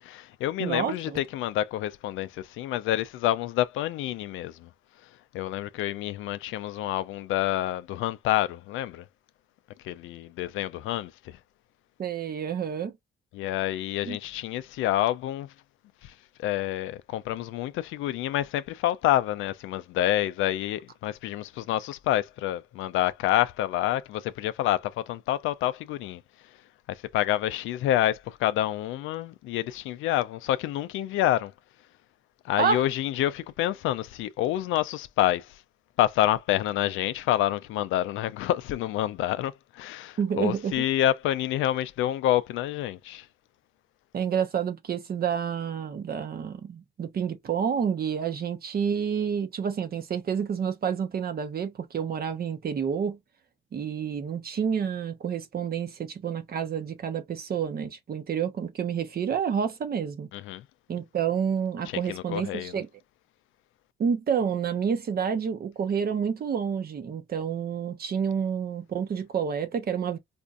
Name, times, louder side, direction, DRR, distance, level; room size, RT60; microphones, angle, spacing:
voice 1, 0.0-4.7 5.3-9.0 9.8-11.4 13.3-15.5 16.0-16.1 16.4-26.2 26.9-31.5 32.4-35.6 36.0-43.3 60.3-60.6 61.8-62.7, left 13 dB, 90° left, 0.4 m, -28 dB
voice 2, 0.6-1.2 12.0-12.9 14.1-14.2 32.6-32.8 40.2-40.8 44.1-53.2 53.7-60.3 60.9-62.9 64.0-70.2, right 7 dB, 50° right, 0.9 m, -29 dB
4.2 x 2.6 x 2.4 m
cardioid pair, 90°, 20 cm